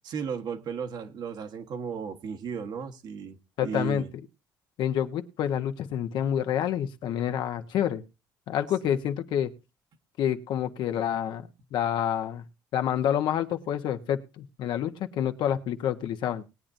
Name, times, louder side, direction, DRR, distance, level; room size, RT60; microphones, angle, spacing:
voice 1, 0.0-4.1, right 6 dB, 65° right, 6 dB, 1.4 m, -35 dB
voice 2, 3.6-4.0 4.8-8.0 8.5-9.5 10.2-12.4 12.7-16.4, left 10 dB, 75° left, 7 dB, 1.2 m, -28 dB
19.5 x 8.9 x 2.7 m, 0.28 s
cardioid pair, 95°, 8 cm